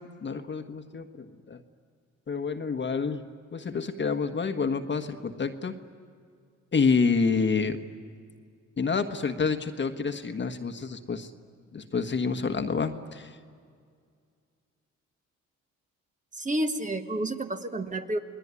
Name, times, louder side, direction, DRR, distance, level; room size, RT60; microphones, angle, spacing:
voice 1, 0.2-1.6 2.3-3.2 3.5-5.7 6.7-7.8 8.8-11.3 11.7-13.4, left 5 dB, 40° left, 7 dB, 1.4 m, -28 dB
voice 2, 16.3-18.2, right 1 dB, 25° right, 6 dB, 1.6 m, -30 dB
28.5 x 20.0 x 9.7 m, 2.2 s
cardioid pair, 90°, 30 cm